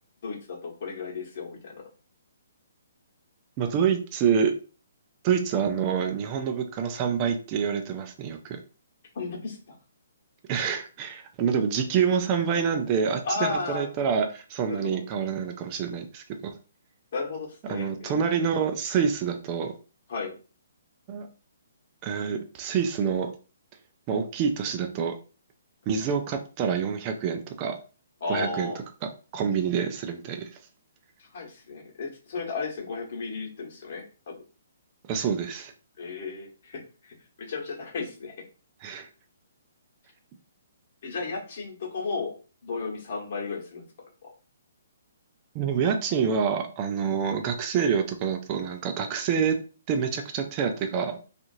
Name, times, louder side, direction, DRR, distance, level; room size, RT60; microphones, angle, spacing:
voice 1, 0.2-1.8 9.1-9.7 13.2-13.9 14.7-15.0 17.1-18.3 20.1-20.3 28.2-28.8 31.2-34.3 36.0-38.4 41.0-42.3 42.6-43.8 44.2-44.3, left 4 dB, 50° left, -1 dB, 1.2 m, -34 dB
voice 2, 3.6-4.5 5.2-8.6 10.5-16.5 17.7-19.7 21.1-21.3 22.0-23.3 24.1-25.2 25.9-27.8 28.3-28.7 29.3-30.5 35.1-35.7 38.8-39.1 45.5-49.6 49.9-51.2, right 7 dB, 30° right, 5 dB, 0.4 m, -27 dB
2.8 x 2.5 x 2.6 m, 0.36 s
hypercardioid pair, 145°, 0 cm